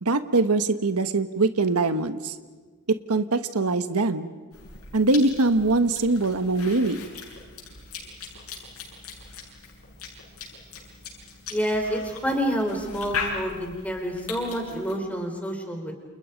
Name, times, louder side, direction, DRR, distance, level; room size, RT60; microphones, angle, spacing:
voice 1, 0.0-2.3 2.9-4.3 4.9-7.1, right 3 dB, 90° right, 10 dB, 1.3 m, -23 dB
Cough / Chewing mastication, 4.5-15.0, left 4 dB, 80° left, 7.7 m, -39 dB
voice 2, 11.5-15.9, equal, 5° left, 3 dB, 4.3 m, -28 dB
30.0 x 28.5 x 5.3 m, 1.4 s
head